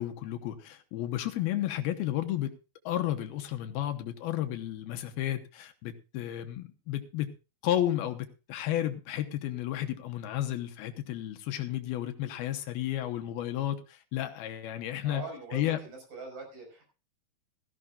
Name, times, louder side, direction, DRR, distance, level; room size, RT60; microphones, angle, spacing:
voice 1, 0.0-2.5 2.9-7.3 7.6-15.2 15.5-15.8, left 12 dB, 85° left, 7 dB, 2.9 m, -32 dB
voice 2, 15.0-16.9, right 3 dB, 60° right, 3 dB, 7.2 m, -43 dB
17.0 x 14.5 x 2.5 m, 0.31 s
omnidirectional pair, 4.4 m